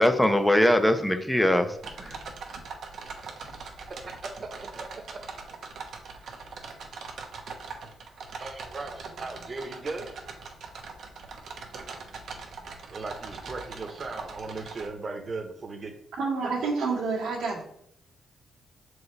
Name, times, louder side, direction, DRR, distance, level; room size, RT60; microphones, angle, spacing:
voice 1, 0.0-2.2, left 1 dB, 5° left, 8 dB, 0.7 m, -22 dB
sound 1, 1.7-14.9, right 4 dB, 70° right, 1.0 m, -41 dB
voice 2, 4.0-5.0 8.4-10.1 12.9-15.9 16.4-16.7, right 3 dB, 40° right, 4 dB, 1.1 m, -37 dB
voice 3, 16.2-17.6, right 4 dB, 90° right, -1 dB, 1.8 m, -28 dB
6.6 x 4.7 x 3.3 m, 0.68 s
cardioid pair, 105°, 0 cm